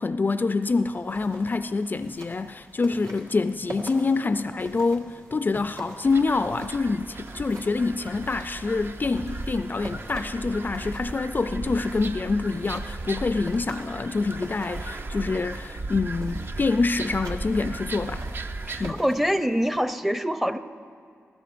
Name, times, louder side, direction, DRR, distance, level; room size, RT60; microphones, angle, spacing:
voice 1, 0.0-18.3 18.8-19.0, left 3 dB, 40° left, 0.3 m, -26 dB
sound 1, 0.6-19.8, right 1 dB, 75° right, 1.5 m, -45 dB
sound 2, 6.0-18.9, right 2 dB, 45° right, 0.6 m, -36 dB
voice 2, 18.7-20.6, equal, 5° right, 0.6 m, -25 dB
19.5 x 14.5 x 2.5 m
cardioid pair, 50°, 5 cm